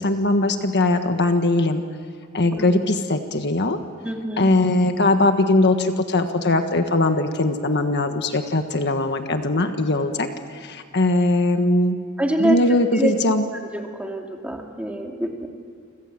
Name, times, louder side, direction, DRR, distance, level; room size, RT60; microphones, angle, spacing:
voice 1, 0.0-1.8 2.3-3.8 4.4-12.0 12.4-13.4, left 2 dB, 50° left, 7 dB, 1.5 m, -20 dB
voice 2, 2.5-2.8 4.0-4.5 12.2-12.6 12.9-13.1 13.7-15.5, right 1 dB, 5° right, 2 dB, 2.6 m, -25 dB
29.5 x 25.5 x 7.6 m, 2.1 s
head